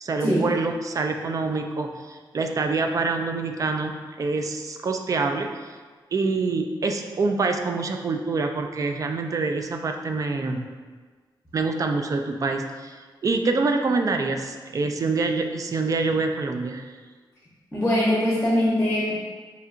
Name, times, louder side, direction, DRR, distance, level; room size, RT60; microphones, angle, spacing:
voice 1, 0.0-5.5 6.1-10.7 11.5-13.0 13.2-16.9, right 3 dB, 40° right, 5 dB, 0.3 m, -26 dB
voice 2, 17.7-19.1, left 1 dB, 15° left, -6 dB, 0.8 m, -22 dB
5.5 x 2.7 x 2.4 m, 1.5 s
wide cardioid pair, 140°, 9 cm